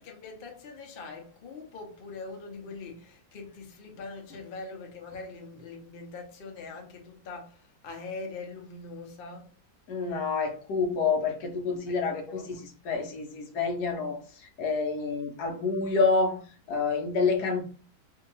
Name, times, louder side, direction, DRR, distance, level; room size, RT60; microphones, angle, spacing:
voice 1, 0.0-9.5 11.9-12.6, left 3 dB, 45° left, 0.7 m, -42 dB
voice 2, 9.9-12.6 12.8-14.2 14.6-16.4 16.7-17.6, left 4 dB, 75° left, 1.2 m, -28 dB
2.8 x 2.8 x 3.9 m
omnidirectional pair, 1.8 m